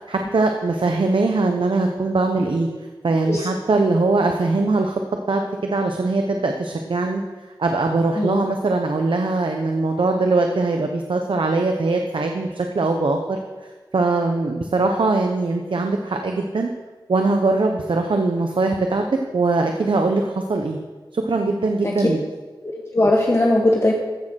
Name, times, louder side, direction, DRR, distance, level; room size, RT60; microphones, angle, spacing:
voice 1, 0.0-2.7 3.0-5.0 5.3-7.2 7.6-13.4 13.9-16.7 17.1-19.0 19.3-20.8 21.1-22.2, right 3 dB, 80° right, 3 dB, 0.9 m, -21 dB
voice 2, 8.1-8.5 21.8-22.1 22.6-23.9, left 1 dB, 35° left, -1 dB, 1.3 m, -20 dB
15.0 x 6.6 x 6.3 m, 1.3 s
wide cardioid pair, 80°, 8 cm